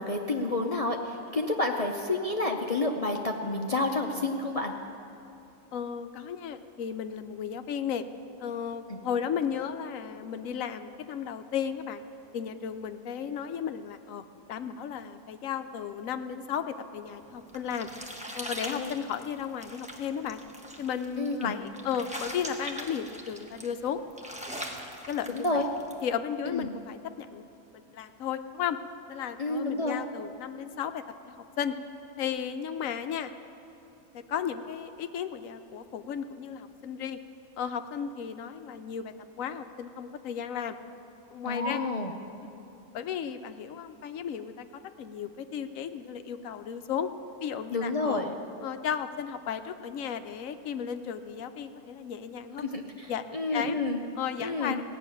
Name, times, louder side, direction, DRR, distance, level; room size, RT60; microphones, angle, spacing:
voice 1, 0.0-4.7 8.9-9.0 18.7-18.9 21.2-21.6 25.3-25.6 26.5-26.7 29.4-30.0 41.4-42.1 47.7-48.3 52.7-53.1 53.3-54.0 54.4-54.8, left 2 dB, 45° left, 2 dB, 0.5 m, -29 dB
voice 2, 5.7-8.0 8.4-12.0 12.3-17.9 18.3-20.4 20.8-24.0 25.1-25.6 26.0-27.5 27.7-28.8 29.1-31.8 32.2-33.3 34.1-37.2 37.6-40.8 41.3-41.8 42.9-47.1 47.4-48.2 48.6-52.8 53.1-53.8 54.2-54.9, left 8 dB, 70° left, 9 dB, 1.0 m, -34 dB
sound 1, 17.1-26.0, equal, 5° right, 0.9 m, -42 dB
16.0 x 6.7 x 9.1 m, 2.9 s
omnidirectional pair, 1.5 m